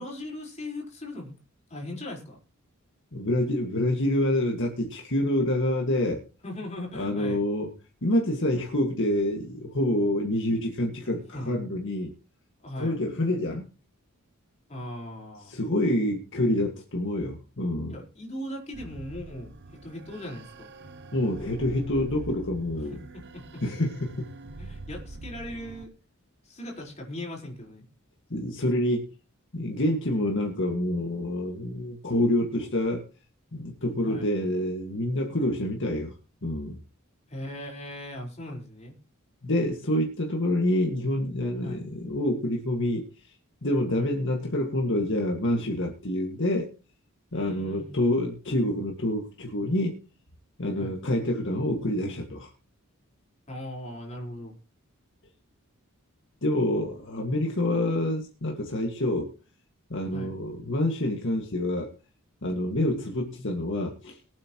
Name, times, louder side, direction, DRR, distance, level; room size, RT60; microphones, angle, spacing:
voice 1, 0.0-1.3 1.7-2.4 6.4-7.4 11.0-11.6 12.6-13.0 14.7-15.6 17.9-20.7 23.1-23.6 24.6-25.9 26.4-27.8 34.0-34.3 37.3-38.9 41.6-41.8 43.9-44.1 47.3-48.2 50.8-51.0 53.5-54.5 60.1-60.3 62.7-62.9, left 1 dB, 30° left, -1 dB, 4.5 m, -39 dB
voice 2, 3.1-6.2 7.0-7.7 8.0-12.1 12.8-13.7 15.5-17.9 21.1-23.0 23.6-24.3 28.3-29.1 29.5-33.0 33.5-36.1 36.4-36.8 39.4-43.3 43.6-46.7 47.3-50.0 50.6-52.5 56.4-59.3 59.9-61.9 62.4-64.2, left 1 dB, 60° left, 0 dB, 2.0 m, -27 dB
sound 1, 18.7-25.9, right 2 dB, 55° right, 1.0 m, -44 dB
22.5 x 8.6 x 3.0 m, 0.35 s
head